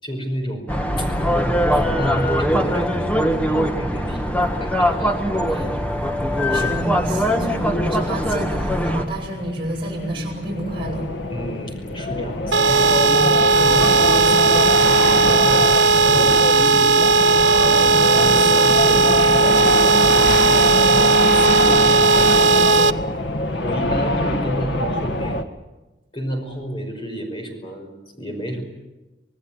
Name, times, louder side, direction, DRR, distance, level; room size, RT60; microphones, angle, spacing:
voice 1, 0.0-0.7 1.0-1.1 1.7-5.1 5.5-5.7 7.2-7.7 11.3-15.7 16.0-17.1 17.6-23.0 23.6-25.4 26.1-28.6, equal, 25° left, 3 dB, 5.3 m, -30 dB
sound 1, 0.7-9.0, equal, 10° left, 1.5 m, -21 dB
sound 2, 5.5-25.4, left 1 dB, 80° left, 1.7 m, -25 dB
voice 2, 6.3-11.1, right 1 dB, 30° right, -2 dB, 7.5 m, -29 dB
sound 3, 12.5-22.9, right 3 dB, 85° right, 0.8 m, -15 dB
27.0 x 18.0 x 9.0 m, 1.1 s
head